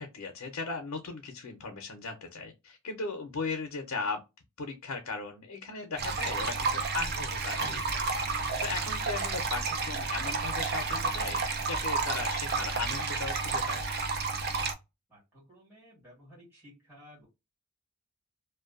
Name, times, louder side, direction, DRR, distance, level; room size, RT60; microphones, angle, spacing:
voice 1, 0.0-4.2 4.6-13.8, left 4 dB, 90° left, 0.5 m, -37 dB
sound 1, 6.0-14.7, right 4 dB, 45° right, 0.4 m, -31 dB
voice 2, 15.1-17.3, equal, 10° right, 1.5 m, -55 dB
2.5 x 2.1 x 2.4 m
head